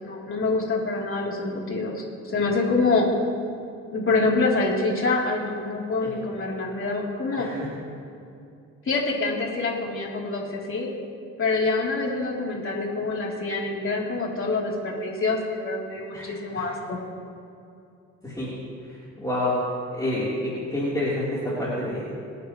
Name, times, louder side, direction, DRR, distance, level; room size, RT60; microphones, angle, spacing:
voice 1, 0.0-3.1 3.9-7.5 8.9-10.9 11.4-17.0, left 3 dB, 45° left, -3 dB, 3.4 m, -26 dB
voice 2, 7.3-7.7 16.1-16.7 18.2-18.5 18.8-19.5 19.9-22.0, left 1 dB, 10° left, -9 dB, 3.7 m, -29 dB
27.0 x 9.3 x 3.2 m, 2.6 s
cardioid pair, 90°, 30 cm